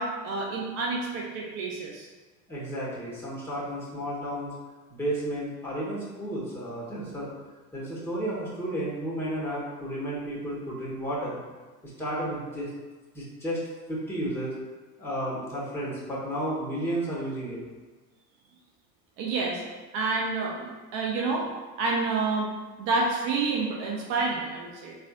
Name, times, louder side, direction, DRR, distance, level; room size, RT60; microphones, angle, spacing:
voice 1, 0.0-2.1 19.2-19.6 19.9-21.5 21.8-22.5 22.8-24.9, right 3 dB, 60° right, -2 dB, 0.7 m, -28 dB
voice 2, 2.5-4.5 4.9-7.3 7.7-11.4 11.8-12.7 13.1-13.6 13.9-14.5 15.0-17.6, right 1 dB, 5° left, -6 dB, 1.4 m, -32 dB
4.1 x 2.5 x 2.5 m, 1.3 s
hypercardioid pair, 80°, 45 cm